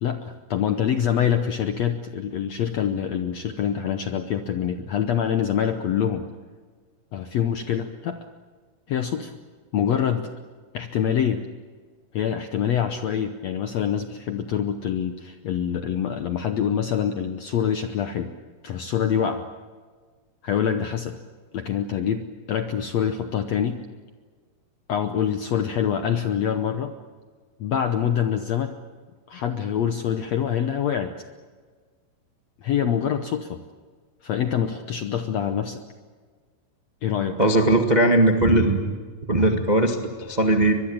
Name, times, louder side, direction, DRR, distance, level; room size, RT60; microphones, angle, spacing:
voice 1, 0.0-6.3 7.1-8.2 8.9-9.3 9.7-10.3 10.7-11.4 12.1-18.3 18.6-19.5 20.4-21.2 21.5-23.8 24.9-26.9 27.6-28.7 29.3-31.1 32.6-33.6 34.2-35.8 37.0-37.4, left 8 dB, 75° left, 8 dB, 1.6 m, -25 dB
voice 2, 37.4-38.8 39.3-40.7, right 1 dB, 40° right, 4 dB, 0.6 m, -19 dB
23.5 x 22.0 x 8.8 m, 1.5 s
omnidirectional pair, 4.3 m